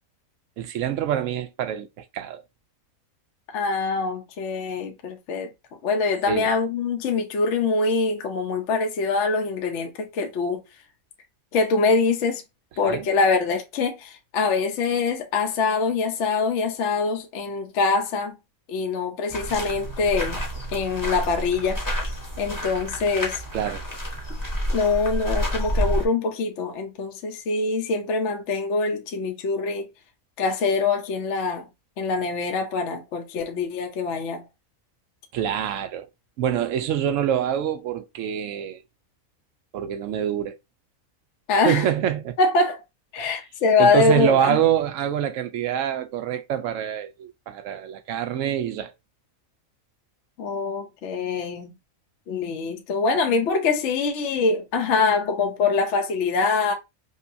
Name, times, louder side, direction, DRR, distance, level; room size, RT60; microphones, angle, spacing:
voice 1, 0.6-2.4 6.3-6.5 12.8-13.1 23.5-23.8 35.3-36.1 36.4-38.8 39.7-40.6 41.5-42.4 43.2-43.4 43.8-48.9, right 10 dB, 70° right, 0.9 m, -25 dB
voice 2, 3.5-5.5 5.8-10.6 11.5-12.4 12.8-18.4 18.7-20.4 20.7-21.8 22.4-23.4 24.7-29.9 30.4-31.7 32.0-34.4 41.5-41.8 42.4-42.8 43.1-44.6 50.4-51.7 52.3-56.7, left 4 dB, 65° left, 0.9 m, -24 dB
sound 1, 19.3-26.1, equal, 15° left, 0.9 m, -29 dB
5.2 x 2.2 x 2.6 m
omnidirectional pair, 1.5 m